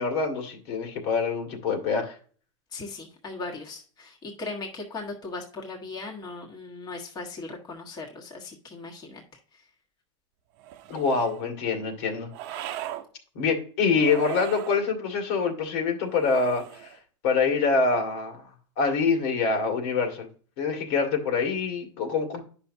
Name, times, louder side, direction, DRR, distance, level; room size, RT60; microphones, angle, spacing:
voice 1, 0.0-2.2 10.9-12.7 13.4-16.9 17.2-18.4 18.8-20.3 20.6-22.4, left 4 dB, 60° left, 4 dB, 2.0 m, -25 dB
voice 2, 2.7-9.2 9.5-9.7, left 3 dB, 25° left, -1 dB, 1.5 m, -38 dB
sound 1, 10.6-11.4 12.3-13.1 13.9-14.8 16.2-17.0, right 13 dB, 50° right, 0.8 m, -38 dB
9.7 x 5.8 x 2.7 m, 0.41 s
supercardioid pair, 140°, 16 cm